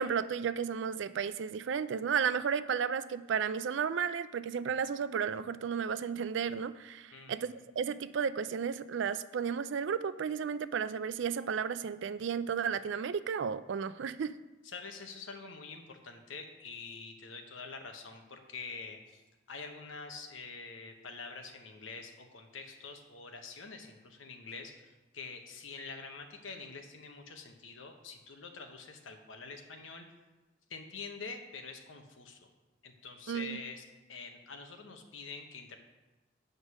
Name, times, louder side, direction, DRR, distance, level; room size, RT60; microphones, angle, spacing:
voice 1, 0.0-14.4 33.3-33.6, right 7 dB, 65° right, 14 dB, 0.4 m, -33 dB
voice 2, 7.1-7.5 14.6-19.2 19.5-30.1 30.7-32.5 32.8-35.8, left 4 dB, 80° left, 5 dB, 1.1 m, -46 dB
8.1 x 5.2 x 6.2 m, 1.1 s
head